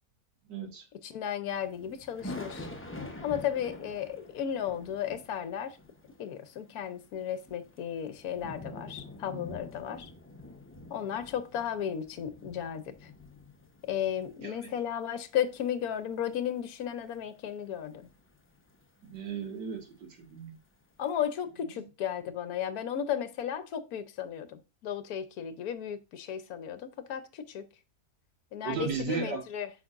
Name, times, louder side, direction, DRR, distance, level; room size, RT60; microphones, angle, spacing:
voice 1, 0.5-0.8 14.4-14.5 19.0-19.8 20.3-20.6 28.6-29.4, right 6 dB, 85° right, 2.3 m, -34 dB
voice 2, 1.0-2.7 3.2-5.8 6.2-10.1 10.9-13.1 13.8-18.1 21.0-27.6 28.5-29.7, left 9 dB, 65° left, 1.2 m, -34 dB
sound 1, 1.5-20.2 20.5-20.6 21.2-21.3, left 2 dB, 15° left, 0.4 m, -47 dB
8.3 x 5.9 x 2.5 m
omnidirectional pair, 1.8 m